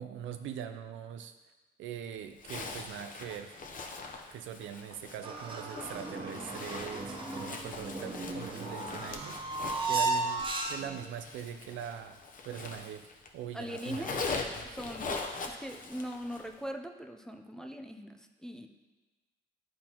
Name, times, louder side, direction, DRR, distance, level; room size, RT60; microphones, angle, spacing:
voice 1, 0.0-1.3 1.8-3.6 4.3-9.4 9.9-12.2 12.4-14.1, right 9 dB, 75° right, 8 dB, 0.4 m, -42 dB
Zipper (clothing), 2.4-13.3 13.6-16.5, left 3 dB, 45° left, 0.7 m, -42 dB
sound 1, 5.2-11.1, right 3 dB, 25° right, 0.8 m, -35 dB
voice 2, 13.5-14.2 14.7-15.2 15.5-18.7, equal, 5° left, 3 dB, 0.5 m, -41 dB
10.0 x 4.2 x 2.9 m, 1.2 s
cardioid pair, 90°, 20 cm